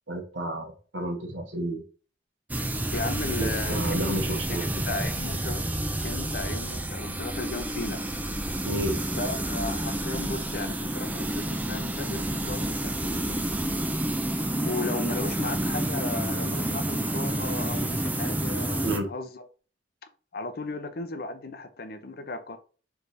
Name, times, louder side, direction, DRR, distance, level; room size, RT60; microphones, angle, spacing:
voice 1, 0.1-1.8 3.4-4.7 8.6-9.0 18.8-19.1, right 1 dB, 90° right, 1.2 m, -31 dB
sound 1, 2.5-19.0, right 1 dB, 10° right, 0.4 m, -29 dB
voice 2, 2.9-4.2 4.5-5.7 6.0-8.0 9.1-13.4 14.5-19.5 20.3-22.6, left 3 dB, 55° left, 0.6 m, -35 dB
3.4 x 3.3 x 4.1 m
head